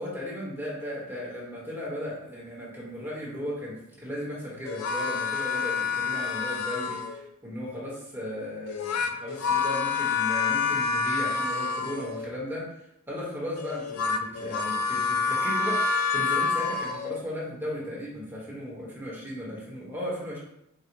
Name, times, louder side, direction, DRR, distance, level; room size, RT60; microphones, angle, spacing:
voice 1, 0.0-12.7 13.1-15.8 16.1-20.4, equal, 10° right, -6 dB, 1.1 m, -36 dB
sound 1, 4.7-7.2 8.7-12.3 13.6-17.2, left 5 dB, 80° left, 0.4 m, -28 dB
3.9 x 2.2 x 4.5 m, 0.80 s
head